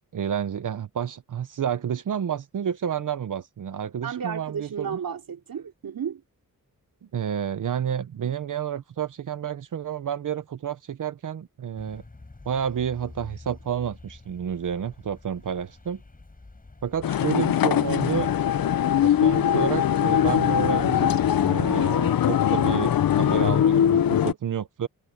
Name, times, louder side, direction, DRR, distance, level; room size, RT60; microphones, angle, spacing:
voice 1, 0.0-5.0 7.1-12.0 12.5-16.0 16.8-18.3 19.0-24.9, right 8 dB, 65° right, 0.8 m, -30 dB
voice 2, 4.0-6.2, right 7 dB, 85° right, 2.8 m, -33 dB
sound 1, 11.8-24.3, left 2 dB, 25° left, 5.7 m, -48 dB
sound 2, 17.0-24.3, left 10 dB, 90° left, 0.7 m, -21 dB
wide cardioid pair, 135°, 34 cm